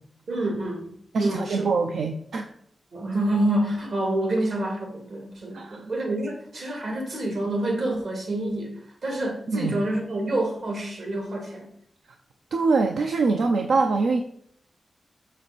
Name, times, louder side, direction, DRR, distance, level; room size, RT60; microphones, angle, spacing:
voice 1, 0.3-0.9 1.2-1.8 2.9-11.7, right 1 dB, 65° right, 1 dB, 2.3 m, -27 dB
voice 2, 1.1-2.5 5.5-5.9 9.5-9.7 12.5-14.2, right 4 dB, 85° right, 5 dB, 0.6 m, -24 dB
6.3 x 6.3 x 4.1 m, 0.67 s
wide cardioid pair, 130°, 0 cm